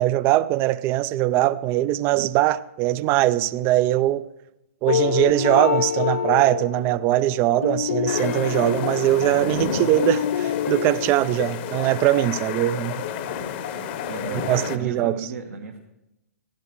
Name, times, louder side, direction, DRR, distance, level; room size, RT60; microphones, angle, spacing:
voice 1, 0.0-4.3 4.8-13.0 14.5-15.1, right 14 dB, 30° right, 0.4 m, -21 dB
sound 1, 4.9-9.7 10.0-11.2, left 9 dB, 65° left, 0.4 m, -26 dB
sound 2, 8.1-14.8, left 8 dB, 45° left, 0.9 m, -30 dB
voice 2, 14.1-15.8, right 5 dB, 70° right, 1.3 m, -34 dB
16.0 x 12.5 x 3.1 m
figure-of-eight pair, 115°, 8 cm